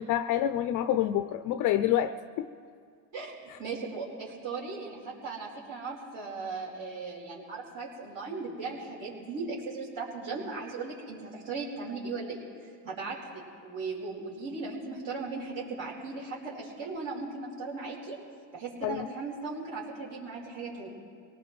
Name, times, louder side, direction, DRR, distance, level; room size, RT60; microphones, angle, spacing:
voice 1, 0.0-2.5 3.5-3.6 18.8-19.1, left 11 dB, 50° left, 11 dB, 0.5 m, -27 dB
voice 2, 3.1-12.4 12.8-18.2 18.5-20.9, right 4 dB, 55° right, -6 dB, 4.3 m, -37 dB
25.0 x 18.0 x 3.2 m, 2.1 s
supercardioid pair, 115°, 40 cm